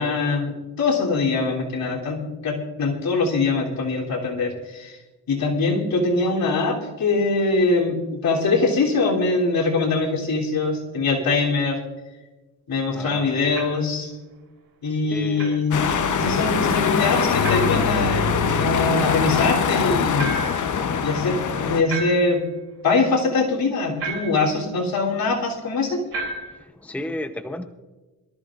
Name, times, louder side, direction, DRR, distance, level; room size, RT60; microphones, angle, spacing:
voice 1, 0.0-5.0 5.3-11.8 12.7-14.1 14.8-15.8 16.1-20.3 20.6-20.7 21.0-22.4 22.8-26.0, left 3 dB, 75° left, -3 dB, 3.3 m, -23 dB
voice 2, 12.9-13.6 15.1-15.6 26.6-27.7, left 1 dB, 5° left, 9 dB, 0.8 m, -33 dB
sound 1, 13.5-13.9 15.4-15.6 17.4-17.8 20.2-20.7 21.9-22.5 24.0-24.5 26.1-26.6, right 3 dB, 85° right, 3.6 m, -32 dB
sound 2, 15.7-21.8, left 6 dB, 55° left, 0.9 m, -22 dB
23.0 x 13.5 x 2.5 m, 1.2 s
cardioid pair, 85°, 36 cm